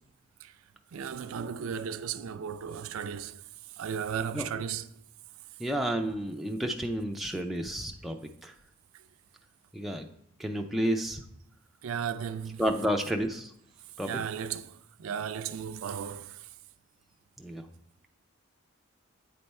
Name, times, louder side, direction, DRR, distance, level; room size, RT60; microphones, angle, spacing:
voice 1, 0.9-3.4 3.8-4.9 11.8-12.6 14.0-14.7 15.0-16.4, right 7 dB, 75° right, 0.4 m, -35 dB
voice 2, 5.6-8.2 8.4-8.5 9.7-10.1 10.4-11.2 12.6-13.5 14.0-14.1 17.4-17.6, equal, ahead, 0.4 m, -30 dB
8.5 x 3.3 x 4.2 m
head